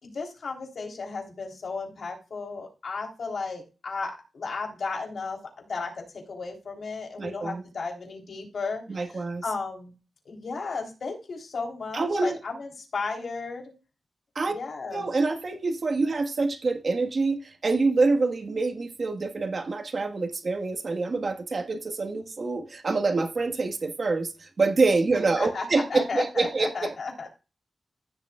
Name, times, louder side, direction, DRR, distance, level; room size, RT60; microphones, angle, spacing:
voice 1, 0.0-9.9 10.3-13.7 14.5-15.1 25.4-27.3, left 4 dB, 65° left, 3.7 m, -34 dB
voice 2, 7.2-7.6 8.9-9.4 11.9-12.4 14.3-14.6 14.9-26.9, right 3 dB, 50° right, 1.5 m, -26 dB
16.0 x 6.8 x 2.4 m
wide cardioid pair, 120°, 0 cm